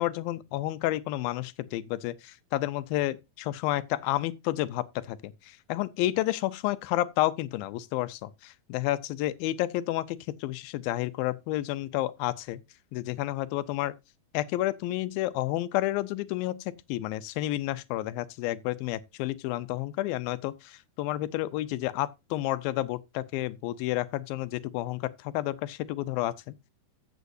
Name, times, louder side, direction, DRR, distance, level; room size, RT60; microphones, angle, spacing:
voice 1, 0.0-12.6 12.9-13.9 14.3-26.5, left 15 dB, 80° left, 2.4 m, -30 dB
14.5 x 8.0 x 2.6 m
omnidirectional pair, 4.3 m